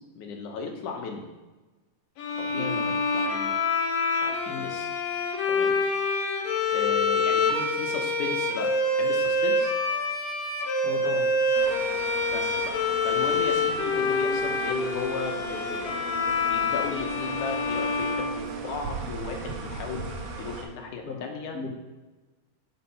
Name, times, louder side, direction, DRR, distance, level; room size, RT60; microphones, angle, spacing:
voice 1, 0.2-1.3 2.4-3.6 4.2-4.9 5.5-5.8 6.7-9.7 12.3-12.8 13.0-16.1 16.5-21.6, left 4 dB, 85° left, 3 dB, 2.6 m, -36 dB
sound 1, 2.2-19.0, left 3 dB, 70° left, 2.2 m, -26 dB
voice 2, 2.5-2.8 4.5-4.7 10.8-11.3 21.0-21.2 21.5-21.7, left 4 dB, 40° left, -2 dB, 1.7 m, -35 dB
sound 2, 11.5-20.6, right 3 dB, 60° right, 2.2 m, -38 dB
7.1 x 6.6 x 5.3 m, 1.2 s
omnidirectional pair, 3.5 m